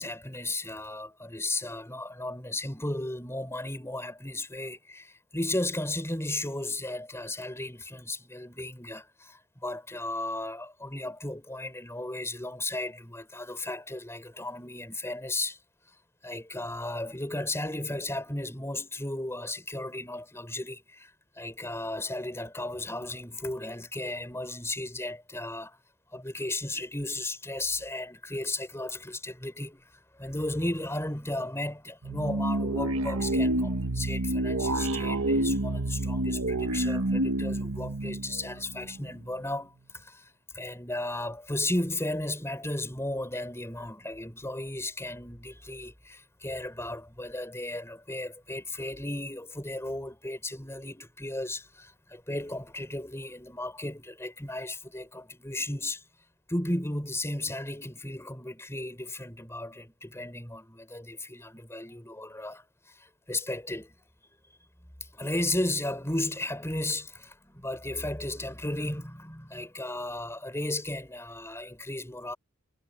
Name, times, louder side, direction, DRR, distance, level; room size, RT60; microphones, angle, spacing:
voice 1, 0.0-15.6 16.2-21.1 21.3-25.8 26.1-29.8 30.2-56.0 56.5-63.9 65.1-72.4, left 1 dB, 10° left, 4.9 m, -35 dB
sound 1, 32.0-39.2, right 1 dB, 75° right, 1.4 m, -28 dB
head